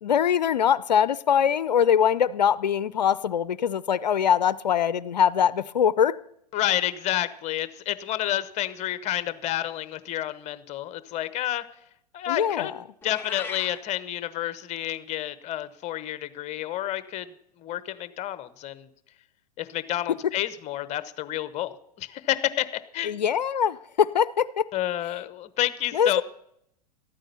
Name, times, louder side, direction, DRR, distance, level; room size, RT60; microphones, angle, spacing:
voice 1, 0.0-6.2 12.3-12.8 23.0-24.7 25.9-26.2, left 8 dB, 85° left, 0.5 m, -22 dB
voice 2, 6.5-11.6 12.1-17.3 17.6-18.9 19.6-22.7 22.9-23.1 24.7-26.2, left 13 dB, 30° left, 0.9 m, -30 dB
Meow, 13.0-13.8, left 4 dB, 10° left, 1.1 m, -37 dB
13.0 x 9.0 x 6.9 m
hypercardioid pair, 105°, 21 cm